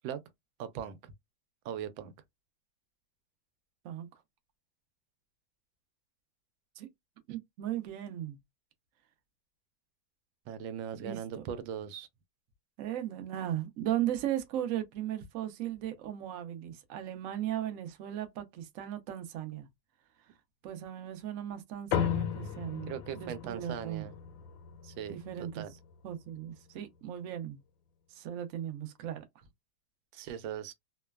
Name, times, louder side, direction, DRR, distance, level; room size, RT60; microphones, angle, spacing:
voice 1, 0.6-1.1 1.6-2.1 10.5-12.1 22.9-24.1 24.8-25.2 25.5-25.7 30.1-30.7, right 9 dB, 85° right, 1.3 m, -39 dB
voice 2, 7.3-8.4 11.0-11.4 12.8-19.7 20.6-24.1 25.1-25.6 26.0-27.6 28.1-29.2, right 11 dB, 70° right, 0.8 m, -37 dB
sound 1, 21.9-26.6, left 8 dB, 85° left, 1.3 m, -36 dB
3.1 x 2.1 x 2.2 m
omnidirectional pair, 2.1 m